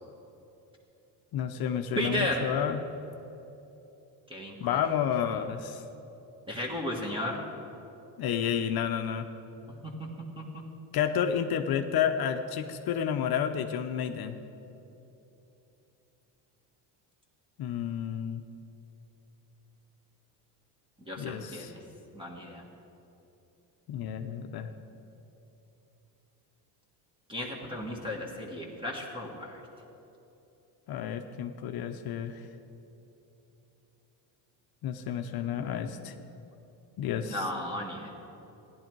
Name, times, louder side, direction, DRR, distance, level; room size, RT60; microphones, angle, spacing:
voice 1, 1.3-2.8 4.6-5.8 8.2-9.3 10.9-14.4 17.6-18.4 21.2-21.7 23.9-24.7 30.9-32.4 34.8-36.1 37.0-37.5, left 8 dB, 55° left, 7 dB, 0.7 m, -30 dB
voice 2, 2.0-2.5 4.3-4.8 6.5-7.4 9.8-9.9 21.1-21.8 22.1-22.6 27.3-29.6 37.2-38.1, left 1 dB, 10° right, -2 dB, 1.5 m, -34 dB
14.5 x 11.0 x 4.6 m, 3.0 s
cardioid pair, 115°, 45 cm